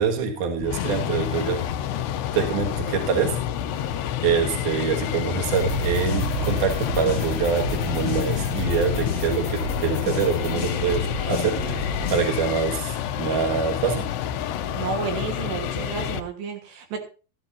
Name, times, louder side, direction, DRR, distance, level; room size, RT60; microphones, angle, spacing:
voice 1, 0.0-1.6 2.3-3.3 4.2-11.6 12.1-14.0, right 6 dB, 55° right, 2 dB, 3.1 m, -25 dB
sound 1, 0.6-16.2, left 10 dB, 80° left, 2.6 m, -29 dB
sound 2, 5.5-12.4, left 1 dB, 45° left, 1.6 m, -30 dB
voice 2, 14.8-17.0, right 5 dB, 75° right, 2 dB, 3.5 m, -31 dB
15.5 x 13.5 x 2.7 m, 0.35 s
omnidirectional pair, 5.0 m